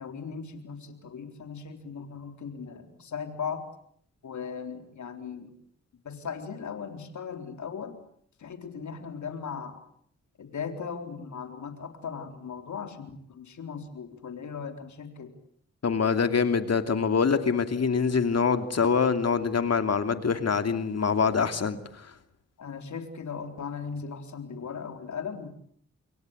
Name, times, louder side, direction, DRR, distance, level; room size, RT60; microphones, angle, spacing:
voice 1, 0.0-3.7 4.2-5.5 6.0-8.0 8.4-9.8 10.4-15.3 22.6-25.5, left 6 dB, 75° left, 6 dB, 4.0 m, -38 dB
voice 2, 15.8-22.1, left 5 dB, 55° left, 8 dB, 2.8 m, -25 dB
28.0 x 23.5 x 8.1 m, 0.64 s
supercardioid pair, 45°, 30 cm